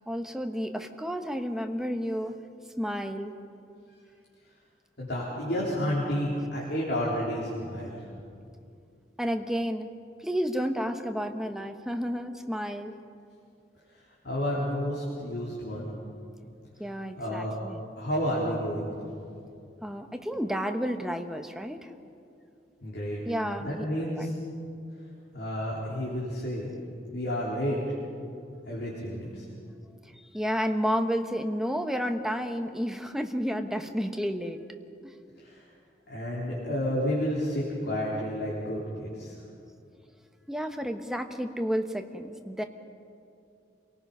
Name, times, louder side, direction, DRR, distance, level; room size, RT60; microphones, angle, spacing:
voice 1, 0.1-2.4 2.8-3.3 6.3-6.5 9.2-9.9 10.2-12.9 16.8-17.8 19.8-21.9 23.2-23.9 24.1-24.3 30.3-34.6 35.0-35.1 40.5-42.6, equal, 5° right, 5 dB, 1.0 m, -31 dB
voice 2, 5.0-8.0 14.2-15.9 17.2-17.5 18.0-18.9 22.8-23.2 23.6-24.3 25.3-26.7 27.1-27.8 28.7-29.4 35.4-35.6 36.1-39.3, equal, 65° left, -6 dB, 3.8 m, -30 dB
26.5 x 18.5 x 5.5 m, 2.5 s
head